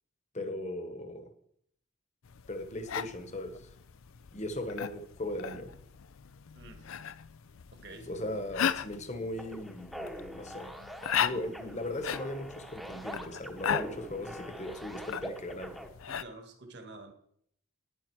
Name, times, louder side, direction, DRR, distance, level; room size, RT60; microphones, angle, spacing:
voice 1, 0.3-1.3 2.5-3.7 4.3-5.7 8.1-10.7 11.2-15.7, left 1 dB, 35° left, 1.2 m, -38 dB
sound 1, 2.2-16.2, left 8 dB, 80° left, 0.5 m, -38 dB
voice 2, 6.5-6.9 7.7-8.1 16.1-17.1, right 2 dB, 50° right, 1.7 m, -48 dB
sound 2, 9.4-15.9, equal, ahead, 0.9 m, -44 dB
11.5 x 10.5 x 4.7 m
head